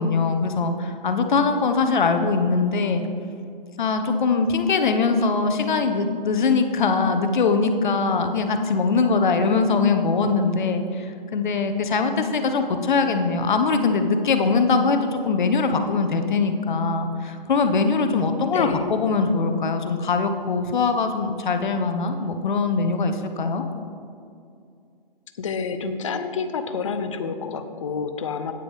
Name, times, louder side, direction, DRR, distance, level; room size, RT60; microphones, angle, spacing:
voice 1, 0.0-3.0 3.8-23.6, left 4 dB, 55° left, 7 dB, 0.9 m, -22 dB
voice 2, 25.4-28.5, left 5 dB, 35° left, 9 dB, 0.5 m, -28 dB
9.2 x 8.8 x 3.5 m, 2.4 s
hypercardioid pair, 150°, 29 cm